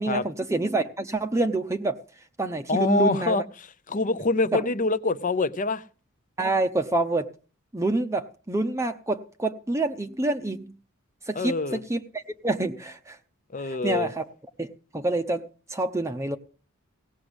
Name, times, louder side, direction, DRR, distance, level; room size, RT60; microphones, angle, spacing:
voice 1, 0.0-2.0 2.4-3.4 4.5-4.7 6.4-7.3 7.7-10.7 11.3-13.2 13.6-14.2 14.6-15.4 15.7-16.4, right 2 dB, 15° right, 0.7 m, -27 dB
voice 2, 2.7-5.8 11.4-11.8 13.5-14.1, left 3 dB, 40° left, 0.7 m, -25 dB
17.5 x 6.1 x 8.0 m
head